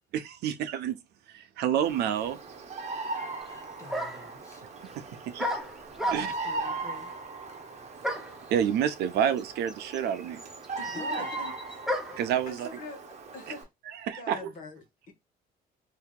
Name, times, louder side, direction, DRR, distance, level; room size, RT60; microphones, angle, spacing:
voice 1, 0.1-1.0 1.3-2.4 5.3-5.6 6.1-6.3 8.5-10.4 12.2-12.7 13.9-14.4, right 9 dB, 75° right, 0.6 m, -28 dB
Bird vocalization bird call bird song, 1.8-13.6, right 3 dB, 40° right, 0.9 m, -39 dB
voice 2, 3.4-4.7 5.2-5.3 6.0-7.1 10.8-11.3, left 3 dB, 15° left, 1.5 m, -48 dB
sound 1, 3.4-3.5 3.9-4.4 5.4-6.5 8.0-8.4 9.4-9.5 9.7-12.3, equal, ahead, 0.7 m, -33 dB
voice 3, 10.8-11.8 12.5-13.0 13.3-13.7 14.1-15.1, left 3 dB, 55° left, 1.2 m, -43 dB
2.8 x 2.7 x 3.6 m
cardioid pair, 110°, 17 cm